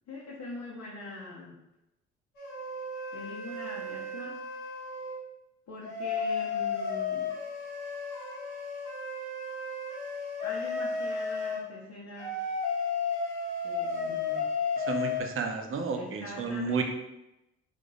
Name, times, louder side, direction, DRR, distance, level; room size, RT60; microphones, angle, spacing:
voice 1, 0.1-1.6 3.1-4.3 5.7-7.3 10.4-12.3 13.6-14.5 15.9-16.8, left 2 dB, 50° left, -6 dB, 1.1 m, -42 dB
sound 1, 2.3-5.2 5.8-11.6 12.2-15.2, left 4 dB, 65° left, 1.4 m, -33 dB
voice 2, 14.8-16.8, right 5 dB, 40° right, 4 dB, 0.8 m, -32 dB
3.5 x 3.4 x 3.9 m, 0.91 s
figure-of-eight pair, 45°, 34 cm